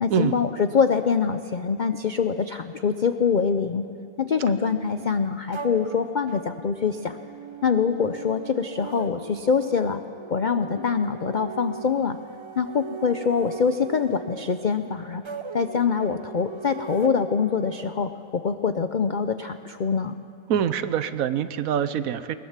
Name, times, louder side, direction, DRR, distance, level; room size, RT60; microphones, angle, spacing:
voice 1, 0.0-3.9 4.2-7.2 7.6-10.0 10.3-12.2 12.6-15.2 15.5-20.2, left 6 dB, 85° left, 9 dB, 0.4 m, -24 dB
sound 1, 5.5-17.8, right 6 dB, 35° right, 0.4 m, -40 dB
voice 2, 20.5-22.4, right 9 dB, 65° right, 13 dB, 1.1 m, -25 dB
20.5 x 20.0 x 7.3 m, 2.8 s
omnidirectional pair, 1.7 m